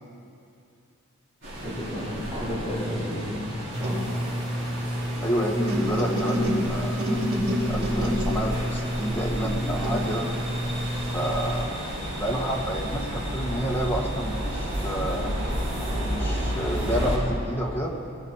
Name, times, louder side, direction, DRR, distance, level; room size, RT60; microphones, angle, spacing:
sound 1, 1.4-17.2, equal, 60° right, 4.6 m, -32 dB
voice 1, 1.6-4.2, equal, 25° right, -11 dB, 3.9 m, -32 dB
sound 2, 3.7-11.6, equal, 90° right, 4.3 m, -28 dB
voice 2, 5.2-7.3 7.7-10.3 11.1-11.8 12.2-15.3 15.9-17.9, equal, 10° left, -2 dB, 1.5 m, -29 dB
21.5 x 14.5 x 4.4 m, 2.6 s
head